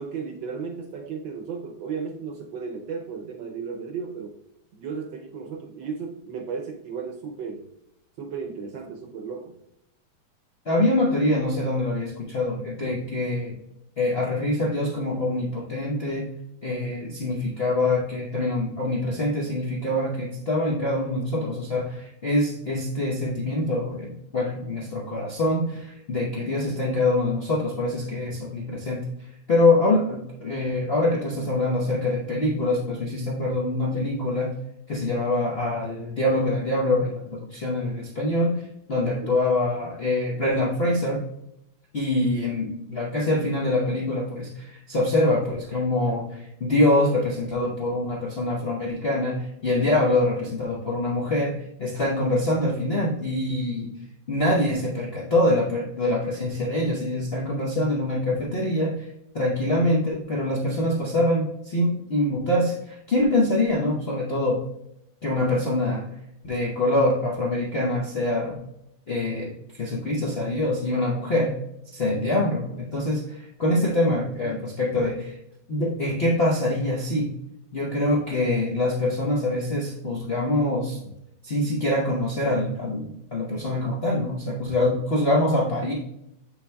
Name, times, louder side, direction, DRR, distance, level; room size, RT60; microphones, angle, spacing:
voice 1, 0.0-4.3 4.7-7.6 8.2-9.6 26.5-26.6 39.2-39.4 74.4-74.6, right 5 dB, 70° right, 3 dB, 1.2 m, -34 dB
voice 2, 10.7-13.5 14.0-16.3 16.6-29.0 29.5-34.5 34.9-41.2 41.9-53.9 54.3-59.1 59.3-64.6 65.2-66.1 66.4-68.6 69.1-71.6 71.9-75.4 75.7-77.3 77.7-81.0 81.4-85.9, left 1 dB, 85° left, -3 dB, 0.5 m, -24 dB
7.5 x 6.0 x 2.2 m, 0.82 s
omnidirectional pair, 2.4 m